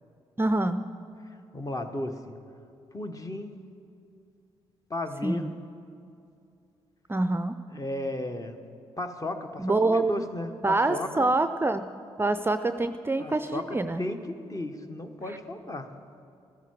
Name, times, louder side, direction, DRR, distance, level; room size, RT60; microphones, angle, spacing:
voice 1, 0.4-0.8 5.2-5.5 7.1-7.6 9.6-10.3 10.6-11.9 12.2-14.0, right 2 dB, 15° right, 10 dB, 0.5 m, -26 dB
voice 2, 1.2-2.4 2.9-3.6 4.9-5.5 7.7-8.6 9.0-11.3 13.2-15.9, left 1 dB, 25° left, 7 dB, 1.2 m, -35 dB
14.0 x 13.0 x 4.7 m, 2.5 s
hypercardioid pair, 40°, 13 cm